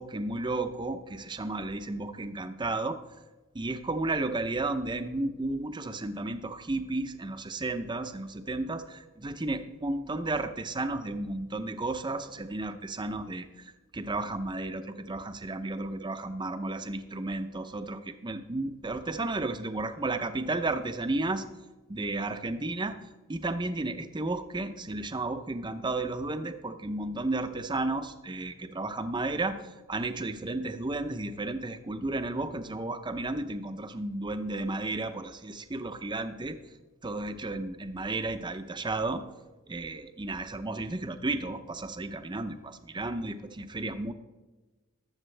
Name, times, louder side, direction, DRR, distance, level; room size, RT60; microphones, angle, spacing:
voice 1, 0.0-3.0 3.5-8.8 9.2-13.5 13.9-21.5 21.9-23.0 23.3-36.6 37.0-39.2 39.7-44.1, right 2 dB, 20° right, 9 dB, 0.7 m, -33 dB
20.5 x 7.3 x 3.3 m, 1.2 s
head